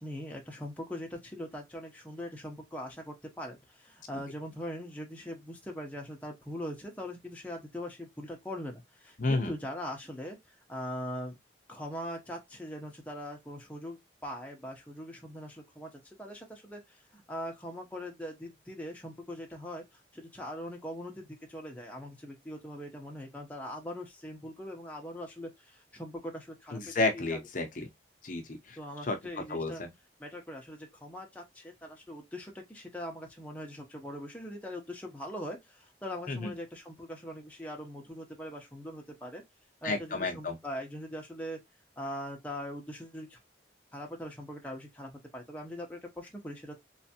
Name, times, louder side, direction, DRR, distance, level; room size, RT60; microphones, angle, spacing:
voice 1, 0.0-11.4 11.7-19.8 20.1-27.4 28.8-29.8 30.2-39.4 39.8-41.6 42.0-43.4 43.9-46.7, equal, 10° left, 0.7 m, -41 dB
voice 2, 9.2-9.5 26.7-27.9 28.2-28.8 29.1-29.2 29.5-29.9 36.3-36.5 39.8-40.6, left 3 dB, 45° left, 0.6 m, -31 dB
3.3 x 3.1 x 2.8 m
head